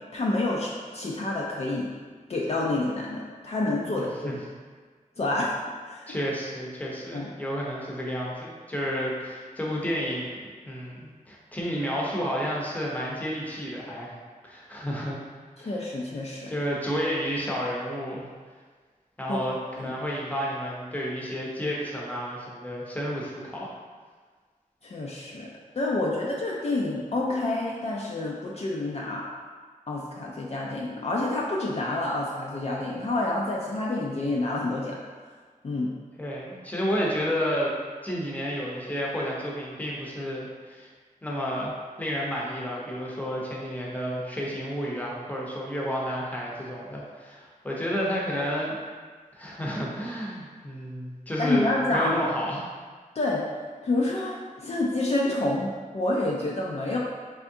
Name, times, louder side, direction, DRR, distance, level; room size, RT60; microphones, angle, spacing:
voice 1, 0.1-1.9 2.3-4.4 5.2-5.5 5.9-6.1 7.1-7.3 15.6-16.5 19.3-19.4 19.8-19.9 24.8-25.5 25.7-29.2 29.9-35.0 35.6-35.9 51.4-52.3 53.2-53.5 53.8-57.0, left 2 dB, 50° left, -4 dB, 0.4 m, -28 dB
voice 2, 3.9-4.4 6.1-14.1 14.4-15.2 15.6-15.8 16.5-18.3 19.2-23.7 36.2-37.7 38.0-40.9 41.2-41.7 42.0-48.8 49.3-52.7, equal, 10° left, -4 dB, 0.7 m, -31 dB
3.5 x 3.4 x 2.7 m, 1.5 s
wide cardioid pair, 95°, 14 cm